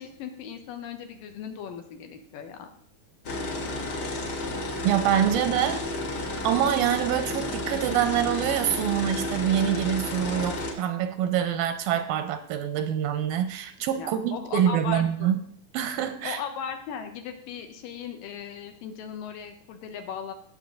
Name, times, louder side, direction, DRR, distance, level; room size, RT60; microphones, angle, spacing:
voice 1, 0.0-2.7 13.9-15.3 16.2-20.3, left 7 dB, 75° left, 6 dB, 2.7 m, -37 dB
sound 1, 3.2-10.7, left 2 dB, 60° left, 1.1 m, -32 dB
voice 2, 4.8-5.8 6.4-15.4 15.7-16.4, right 10 dB, 90° right, 10 dB, 2.7 m, -25 dB
17.0 x 6.8 x 3.9 m, 0.64 s
omnidirectional pair, 4.1 m